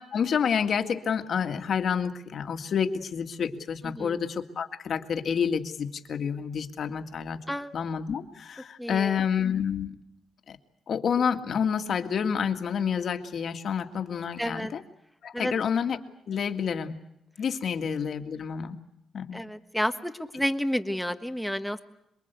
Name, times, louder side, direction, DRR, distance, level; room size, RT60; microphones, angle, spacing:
voice 1, 0.1-7.4 7.7-10.0 10.5-10.6 10.9-14.8 15.2-16.0 16.3-17.0 17.4-18.8 19.1-19.4, left 7 dB, 55° left, 7 dB, 2.0 m, -29 dB
voice 2, 3.8-4.2 7.5-7.7 8.8-9.2 14.4-14.7 15.3-15.5 19.3-21.8, equal, ahead, 8 dB, 1.4 m, -30 dB
28.0 x 22.0 x 8.3 m, 0.82 s
cardioid pair, 125°, 0 cm